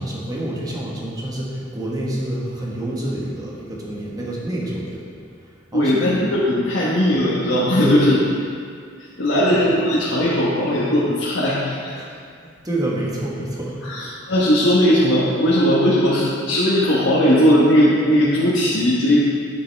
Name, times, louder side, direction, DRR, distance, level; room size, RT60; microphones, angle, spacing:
voice 1, 0.0-5.1 5.7-6.2 7.8-8.0 9.4-9.6 12.0-12.1 12.4-13.8, right 1 dB, 20° right, -4 dB, 1.3 m, -27 dB
voice 2, 5.7-8.2 9.2-11.7 13.8-19.2, equal, 90° left, -7 dB, 1.3 m, -18 dB
9.2 x 7.1 x 3.4 m, 2.2 s
head